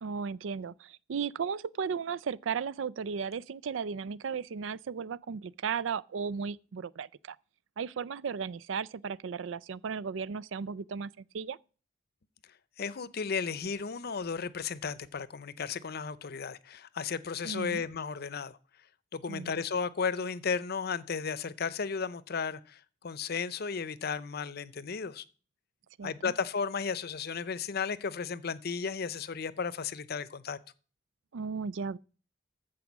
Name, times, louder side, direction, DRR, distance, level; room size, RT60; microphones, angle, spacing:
voice 1, 0.0-7.4 7.8-11.6 17.4-17.8 19.3-19.5 26.0-26.3 31.3-32.0, right 6 dB, 85° right, 0.4 m, -35 dB
voice 2, 12.8-18.6 19.1-25.2 26.0-30.6, left 5 dB, 55° left, 0.6 m, -34 dB
14.0 x 4.8 x 7.2 m
head